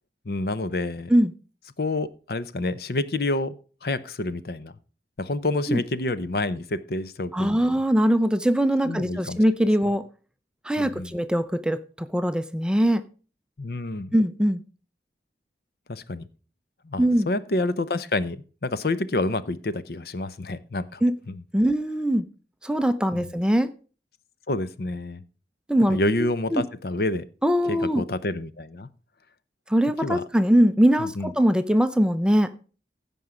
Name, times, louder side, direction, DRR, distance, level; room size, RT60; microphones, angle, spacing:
voice 1, 0.3-1.1 1.8-3.6 3.8-4.7 5.2-7.7 8.8-9.4 10.8-11.1 13.6-14.1 15.9-16.3 16.8-21.4 23.1-23.3 24.5-25.2 25.9-27.2 27.7-28.9 30.0-30.2 31.0-31.3, left 2 dB, 60° left, 15 dB, 0.7 m, -28 dB
voice 2, 7.3-10.0 10.6-13.0 14.1-14.6 17.0-17.3 21.0-21.1 21.5-22.2 22.6-23.7 25.7-26.0 26.5-26.6 27.4-28.0 29.7-32.5, equal, 5° right, 11 dB, 0.5 m, -21 dB
15.5 x 5.4 x 4.9 m, 0.37 s
head